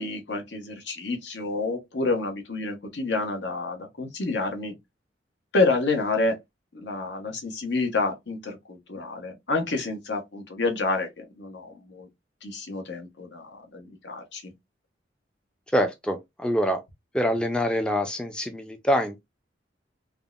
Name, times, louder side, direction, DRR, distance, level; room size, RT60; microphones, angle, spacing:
voice 1, 0.0-4.7 5.5-6.4 6.7-12.1 12.4-14.5, left 3 dB, 80° left, 0.9 m, -28 dB
voice 2, 15.7-16.8 17.1-19.2, equal, 5° left, 0.3 m, -25 dB
3.4 x 2.0 x 2.3 m
head